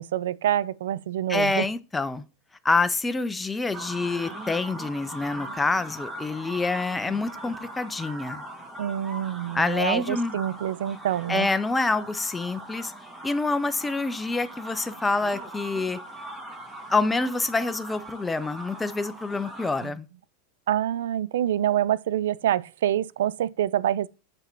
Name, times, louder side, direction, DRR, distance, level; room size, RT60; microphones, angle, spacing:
voice 1, 0.0-1.7 8.8-11.5 19.8-19.9 20.7-24.1, right 11 dB, 85° right, 0.3 m, -26 dB
voice 2, 1.3-2.2 2.6-8.4 9.5-10.4 11.3-12.9 13.2-16.0 16.9-20.1, left 3 dB, 10° left, 0.4 m, -27 dB
sound 1, 3.7-19.9, right 1 dB, 10° right, 2.0 m, -40 dB
6.5 x 5.3 x 3.0 m
supercardioid pair, 120°, 0 cm